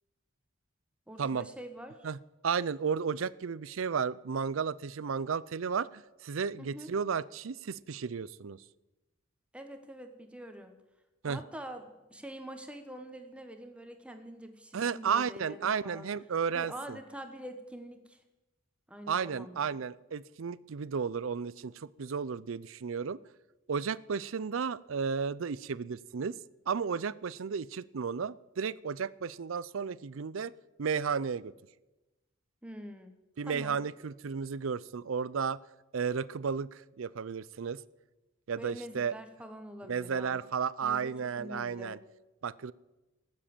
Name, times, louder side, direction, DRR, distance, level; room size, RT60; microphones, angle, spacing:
voice 1, 1.1-2.1 6.6-6.9 9.5-10.7 11.2-11.8 12.1-16.1 16.5-18.2 18.9-19.6 32.6-33.1 33.5-33.8 38.6-40.4 40.8-42.0, equal, 5° right, 6 dB, 1.2 m, -45 dB
voice 2, 2.4-8.6 11.2-11.4 14.7-17.0 19.1-23.2 23.7-26.4 26.7-30.5 30.8-31.5 33.4-35.6 35.9-37.8 38.5-39.1 39.8-42.0 42.4-42.7, right 6 dB, 80° right, 19 dB, 0.5 m, -33 dB
18.5 x 7.5 x 8.9 m, 1.1 s
head